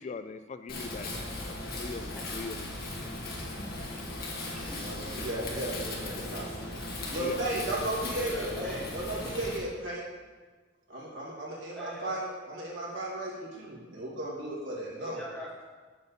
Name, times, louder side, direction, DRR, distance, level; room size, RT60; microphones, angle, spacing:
voice 1, 0.0-2.7 7.2-7.7, left 4 dB, 35° left, 10 dB, 0.3 m, -41 dB
Wind, 0.7-9.6, left 2 dB, 55° left, 2.0 m, -37 dB
voice 2, 1.7-2.2 2.7-3.1 3.6-3.9 4.5-5.1 8.0-8.9 11.7-12.2 15.0-15.6, equal, 5° left, -6 dB, 2.4 m, -44 dB
voice 3, 4.8-6.4 7.1-10.0 10.9-15.2, right 1 dB, 75° right, -4 dB, 2.7 m, -35 dB
7.8 x 5.5 x 7.4 m, 1.4 s
head